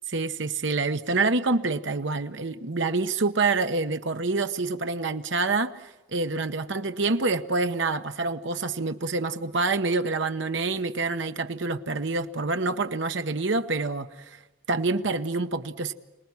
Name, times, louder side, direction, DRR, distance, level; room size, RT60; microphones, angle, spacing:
voice 1, 0.1-14.4 14.7-15.9, right 3 dB, 65° right, 1.1 m, -27 dB
27.5 x 19.0 x 9.7 m
head